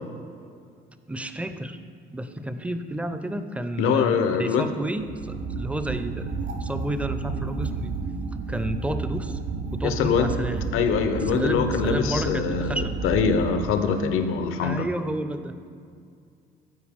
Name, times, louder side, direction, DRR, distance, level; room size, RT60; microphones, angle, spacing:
voice 1, 1.1-1.8 2.1-6.3 6.6-8.0 8.5-9.4 9.7-10.6 11.1-13.0 14.6-15.6, right 1 dB, 5° right, 10 dB, 0.5 m, -31 dB
voice 2, 3.8-4.7 9.8-10.5 10.7-14.9, left 6 dB, 75° left, 7 dB, 0.7 m, -24 dB
sound 1, 5.0-14.1, right 4 dB, 65° right, 0.6 m, -31 dB
13.5 x 4.6 x 3.5 m, 2.2 s
supercardioid pair, 70°, 21 cm